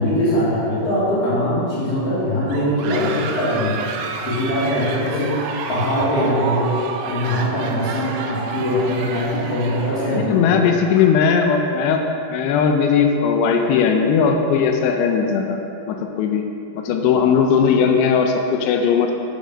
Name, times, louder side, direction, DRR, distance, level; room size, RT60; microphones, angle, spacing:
voice 1, 0.0-3.9 4.2-6.8 7.0-10.6, equal, 45° left, -10 dB, 2.7 m, -21 dB
sound 1, 2.5-10.3, right 4 dB, 85° right, 2.6 m, -30 dB
voice 2, 10.2-12.0 12.3-15.6 15.9-16.4 16.8-19.1, left 6 dB, 85° left, 3 dB, 2.8 m, -18 dB
6.7 x 6.3 x 6.1 m, 2.7 s
omnidirectional pair, 4.8 m